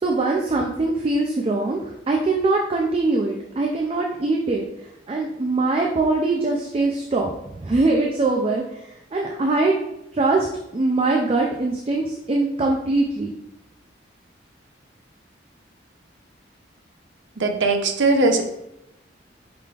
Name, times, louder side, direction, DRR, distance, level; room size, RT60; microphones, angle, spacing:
voice 1, 0.0-1.8 2.1-4.6 5.1-7.3 7.5-8.6 9.1-9.7 10.1-10.5 10.7-13.3, right 3 dB, 30° right, 0 dB, 0.4 m, -22 dB
voice 2, 17.4-18.4, right 2 dB, 85° right, 4 dB, 0.6 m, -19 dB
4.8 x 3.8 x 2.4 m, 0.86 s
head